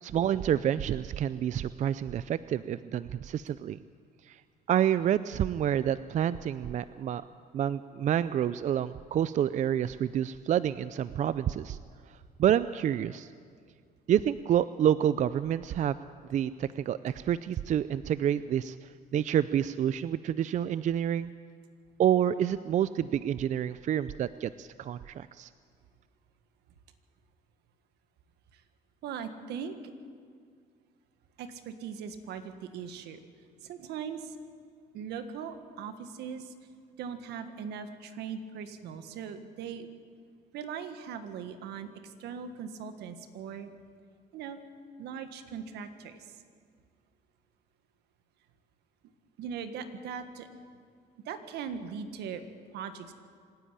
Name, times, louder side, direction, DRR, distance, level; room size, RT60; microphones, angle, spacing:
voice 1, 0.0-3.8 4.3-4.4 4.7-7.2 7.5-11.8 12.4-13.3 14.1-16.0 16.3-18.8 19.1-21.3 22.0-25.5, right 10 dB, 45° right, 15 dB, 0.5 m, -28 dB
voice 2, 29.0-29.8 31.4-33.2 33.6-34.4 34.9-36.5 37.0-39.9 40.5-43.7 44.3-44.6 45.0-46.4 49.4-50.5 51.2-52.4 52.7-53.1, right 7 dB, 80° right, 9 dB, 1.6 m, -40 dB
25.5 x 10.5 x 9.9 m, 2.1 s
cardioid pair, 110°, 17 cm